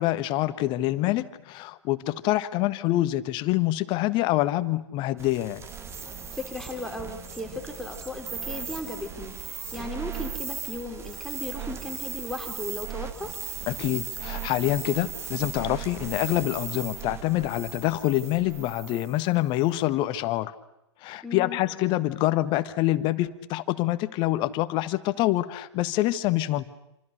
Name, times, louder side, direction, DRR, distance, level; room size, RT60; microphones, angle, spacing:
voice 1, 0.0-5.7 13.7-20.5 21.0-26.7, left 15 dB, 30° left, 13 dB, 1.5 m, -26 dB
sound 1, 5.2-19.2, right 7 dB, 15° right, 1.9 m, -37 dB
voice 2, 6.3-9.4 9.7-13.4 21.2-21.6, left 2 dB, ahead, 2 dB, 3.5 m, -36 dB
27.5 x 26.5 x 6.7 m, 0.86 s
figure-of-eight pair, 110°, 15 cm